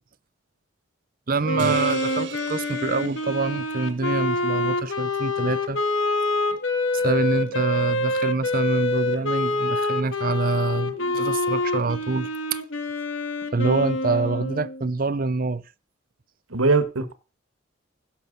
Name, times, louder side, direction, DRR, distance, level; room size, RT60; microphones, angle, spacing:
voice 1, 1.3-5.8 6.9-12.6 13.5-15.6, right 3 dB, 45° right, 0.6 m, -26 dB
Wind instrument woodwind instrument, 1.4-14.9, left 2 dB, 70° left, 1.8 m, -26 dB
sound 1, 1.6-3.9, right 5 dB, 60° right, 1.5 m, -39 dB
voice 2, 16.5-17.1, right 3 dB, 85° right, 1.6 m, -22 dB
16.5 x 7.2 x 5.4 m
head